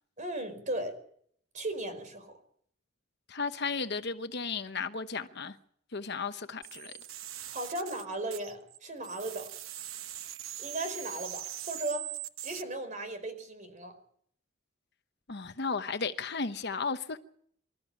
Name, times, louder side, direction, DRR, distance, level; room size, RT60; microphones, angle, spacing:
voice 1, 0.2-1.0 1.5-2.3 7.5-9.5 10.6-12.1 12.4-13.9, right 1 dB, 35° right, 4.8 m, -36 dB
voice 2, 3.3-5.6 5.9-6.9 15.3-17.2, left 4 dB, 55° left, 1.0 m, -34 dB
sound 1, 6.6-8.8 9.0-12.6, right 12 dB, 75° right, 1.0 m, -41 dB
25.5 x 13.5 x 8.9 m
head